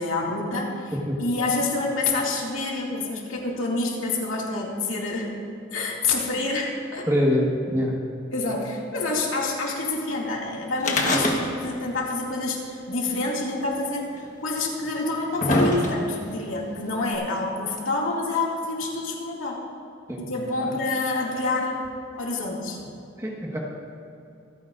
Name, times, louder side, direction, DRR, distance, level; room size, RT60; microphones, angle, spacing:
voice 1, 0.0-0.9 1.2-5.3 5.7-7.1 8.3-19.6 20.3-21.8 22.2-22.8, left 2 dB, 90° left, -3 dB, 2.3 m, -27 dB
voice 2, 7.1-8.0 20.1-20.3 20.6-20.7 23.2-23.6, equal, 15° right, -2 dB, 1.5 m, -24 dB
sound 1, 10.8-11.8 12.1-12.2 13.2-13.3 14.2-14.3 14.9-16.3 17.1-17.2, left 1 dB, 40° left, 1.3 m, -23 dB
26.0 x 9.3 x 2.6 m, 2.7 s
head